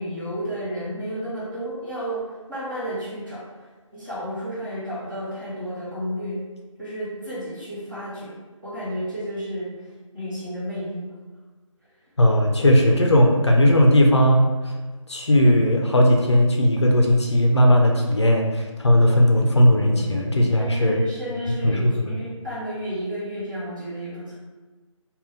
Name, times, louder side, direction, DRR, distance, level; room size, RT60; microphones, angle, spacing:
voice 1, 0.0-6.4 6.8-8.4 8.6-9.8 10.1-11.1 19.8-21.8 22.2-24.4, equal, 35° right, -10 dB, 1.2 m, -32 dB
voice 2, 12.2-14.5 15.1-21.0 21.6-22.0, left 1 dB, 55° left, 0 dB, 0.4 m, -17 dB
2.5 x 2.2 x 3.4 m, 1.3 s
figure-of-eight pair, 175°, 17 cm